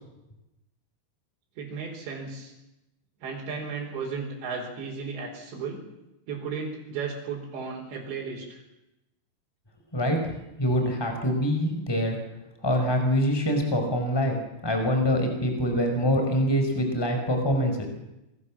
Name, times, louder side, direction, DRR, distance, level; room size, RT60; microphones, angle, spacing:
voice 1, 1.6-2.5 3.2-5.8 6.3-8.6, right 5 dB, 85° right, -3 dB, 6.6 m, -34 dB
voice 2, 10.6-12.2 12.6-14.4 14.6-17.9, equal, 5° left, 4 dB, 4.8 m, -24 dB
27.5 x 23.5 x 7.5 m, 0.93 s
omnidirectional pair, 4.9 m